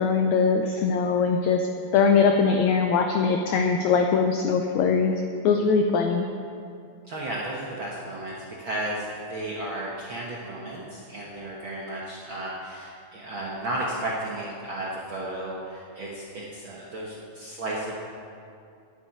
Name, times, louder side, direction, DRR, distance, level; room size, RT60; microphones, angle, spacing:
voice 1, 0.0-1.7 1.9-5.2 5.4-6.3, left 5 dB, 85° left, 4 dB, 1.6 m, -21 dB
voice 2, 7.0-17.9, right 1 dB, 60° right, -4 dB, 1.3 m, -34 dB
10.0 x 7.9 x 9.3 m, 2.4 s
omnidirectional pair, 4.1 m